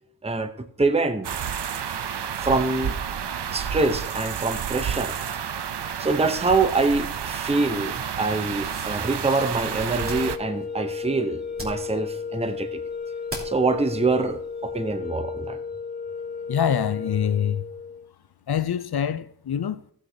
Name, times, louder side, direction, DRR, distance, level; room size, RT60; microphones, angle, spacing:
voice 1, 0.8-1.4 2.4-2.9 3.5-5.2 6.0-12.8 13.4-15.6, right 3 dB, 15° right, 0.7 m, -25 dB
sound 1, 1.2-10.4, right 8 dB, 85° right, 0.6 m, -30 dB
sound 2, 9.9-18.1, left 5 dB, 20° left, 0.4 m, -34 dB
sound 3, 9.9-15.0, right 1 dB, 30° right, 3.1 m, -44 dB
voice 2, 16.5-17.6 18.5-19.8, left 8 dB, 70° left, 0.6 m, -25 dB
15.5 x 8.2 x 2.8 m
wide cardioid pair, 60°, 40 cm